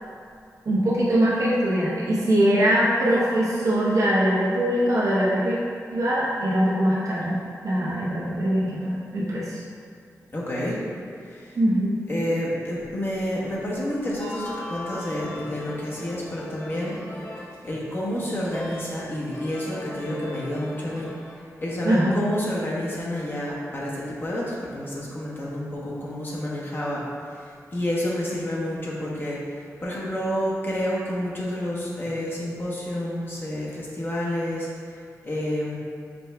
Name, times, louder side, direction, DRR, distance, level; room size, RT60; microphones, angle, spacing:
voice 1, 0.6-5.6 5.9-7.4 7.6-9.6 11.6-12.0 21.8-22.1, right 1 dB, 65° right, -7 dB, 0.8 m, -22 dB
voice 2, 10.3-10.8 11.2-11.6 12.1-17.3 17.6-35.8, left 1 dB, 40° left, -6 dB, 0.9 m, -29 dB
sound 1, 14.2-17.7 18.0-21.3, left 1 dB, 60° left, 1.4 m, -38 dB
5.2 x 4.3 x 2.2 m, 2.3 s
wide cardioid pair, 130°, 6 cm